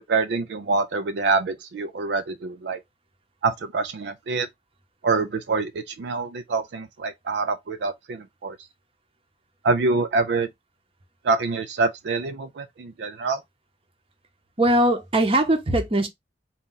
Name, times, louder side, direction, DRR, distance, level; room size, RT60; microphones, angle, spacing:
voice 1, 0.1-2.8 3.4-4.5 5.0-8.6 9.6-10.5 11.2-13.4, right 4 dB, 70° right, 0.4 m, -25 dB
voice 2, 14.6-16.1, right 1 dB, 30° right, 0.8 m, -20 dB
4.1 x 2.4 x 3.7 m
head